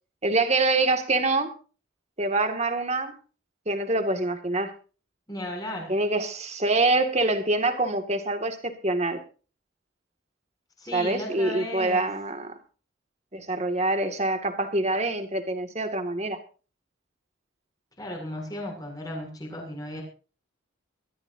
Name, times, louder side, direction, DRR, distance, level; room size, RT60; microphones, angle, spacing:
voice 1, 0.2-1.5 2.2-3.2 3.7-4.7 5.9-9.2 10.9-12.5 13.3-16.4, right 2 dB, 30° right, 6 dB, 2.2 m, -25 dB
voice 2, 5.3-5.9 10.8-12.1 18.0-20.0, left 1 dB, 20° left, 1 dB, 7.4 m, -35 dB
23.0 x 14.5 x 2.7 m, 0.37 s
head